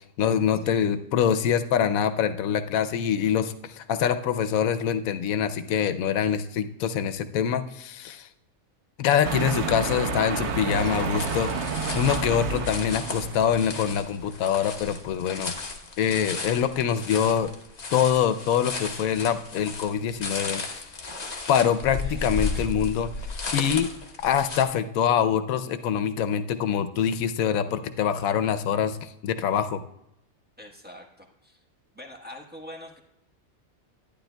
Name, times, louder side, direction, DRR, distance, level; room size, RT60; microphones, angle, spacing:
voice 1, 0.0-8.3 9.0-11.6 11.9-15.5 16.0-17.5 17.9-20.9 21.5-23.1 23.5-23.9 24.2-29.8, left 8 dB, 90° left, 10 dB, 1.0 m, -25 dB
voice 2, 0.6-0.9 22.0-22.2 22.5-22.7 30.6-31.6 31.9-33.0, left 1 dB, 10° right, 0 dB, 1.0 m, -44 dB
sound 1, 9.2-14.2, right 4 dB, 60° right, 1.1 m, -30 dB
sound 2, 11.2-24.6, left 3 dB, 35° left, 0.9 m, -35 dB
11.5 x 10.5 x 2.2 m, 0.83 s
omnidirectional pair, 1.4 m